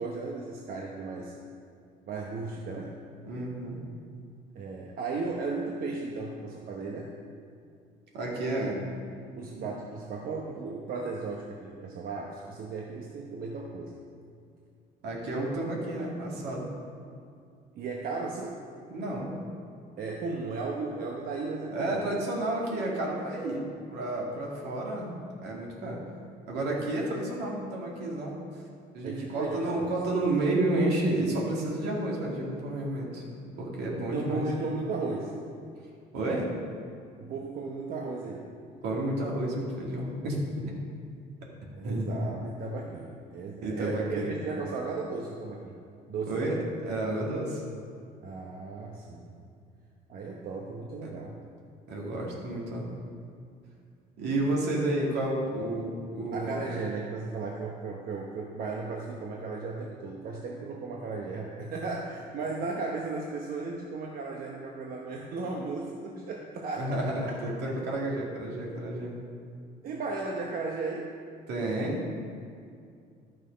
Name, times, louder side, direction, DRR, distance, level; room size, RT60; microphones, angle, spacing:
voice 1, 0.0-1.4 2.1-3.0 4.5-7.1 9.3-14.0 17.7-18.7 20.0-22.0 29.0-30.0 34.0-35.3 37.2-38.5 41.7-45.8 46.1-46.5 48.2-49.5 50.1-51.4 56.3-67.0 67.2-67.4 67.9-68.0 69.8-71.1, right 4 dB, 60° right, -1 dB, 1.0 m, -35 dB
voice 2, 3.2-3.8 8.1-8.8 9.5-9.7 15.0-16.7 18.9-19.3 21.7-25.1 25.4-26.0 26.5-28.4 28.9-33.2 33.6-34.5 36.1-36.5 38.8-40.4 41.8-42.1 43.6-44.3 46.3-46.6 46.8-47.6 51.9-52.9 54.2-56.6 66.8-69.2 71.5-72.0, right 1 dB, 80° right, -2 dB, 2.2 m, -31 dB
11.5 x 6.2 x 5.2 m, 2.3 s
cardioid pair, 110°, 17 cm